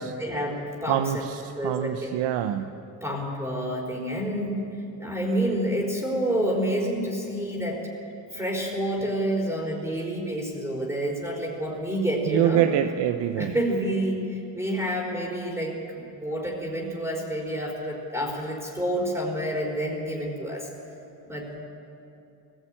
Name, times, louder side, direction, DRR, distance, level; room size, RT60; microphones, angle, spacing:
voice 1, 0.2-1.3 1.6-2.1 3.0-4.6 5.0-7.8 8.3-12.7 13.4-20.7 21.3-21.6, right 1 dB, 5° right, -2 dB, 4.2 m, -28 dB
voice 2, 0.9-2.7 12.3-13.5, right 11 dB, 85° right, 8 dB, 0.9 m, -25 dB
19.0 x 16.5 x 8.9 m, 2.8 s
cardioid pair, 120°, 43 cm